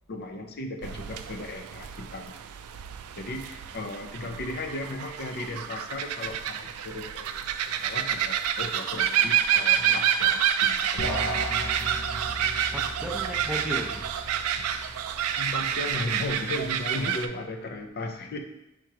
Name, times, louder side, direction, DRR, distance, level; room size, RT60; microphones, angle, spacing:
voice 1, 0.1-2.4 3.2-7.4 7.7-11.2 15.4-18.4, left 2 dB, 45° left, 5 dB, 0.5 m, -36 dB
sound 1, 0.8-17.3, right 9 dB, 80° right, 0.3 m, -28 dB
voice 2, 9.7-10.1 12.0-12.1 12.7-14.1, equal, 5° right, -1 dB, 0.6 m, -36 dB
sound 2, 11.0-16.5, equal, 75° left, 0.9 m, -37 dB
3.6 x 3.0 x 4.7 m, 0.90 s
head